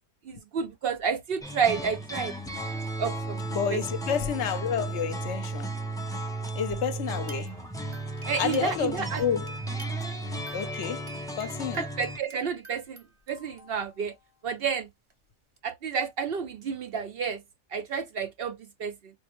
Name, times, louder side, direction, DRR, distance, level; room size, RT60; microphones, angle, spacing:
voice 1, 0.3-2.3 3.0-3.4 3.7-3.8 8.3-9.2 11.8-14.1 14.4-14.9 15.6-17.4 17.7-19.1, right 6 dB, 60° right, 0.7 m, -30 dB
sound 1, 1.4-12.2, right 2 dB, 5° left, 0.3 m, -34 dB
voice 2, 3.5-5.7 6.5-7.6 8.3-9.5 10.5-11.9, left 8 dB, 70° left, 0.9 m, -30 dB
sound 2, 7.2-8.9 9.2-14.2 15.1-15.2 15.6-15.7, right 3 dB, 30° right, 0.7 m, -48 dB
4.2 x 2.0 x 2.9 m
omnidirectional pair, 1.3 m